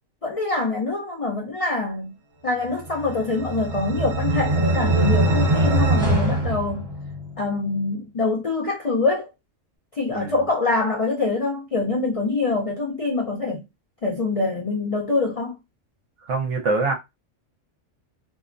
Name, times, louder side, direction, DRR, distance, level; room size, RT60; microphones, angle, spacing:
voice 1, 0.2-2.1 2.4-6.9 7.4-9.3 9.9-13.6 14.0-15.5, left 3 dB, 60° left, 0.3 m, -25 dB
sound 1, 2.9-7.4, right 2 dB, 40° right, 1.3 m, -22 dB
voice 2, 10.1-10.4 16.2-16.9, right 3 dB, 65° right, 1.1 m, -24 dB
2.7 x 2.1 x 2.4 m
omnidirectional pair, 1.4 m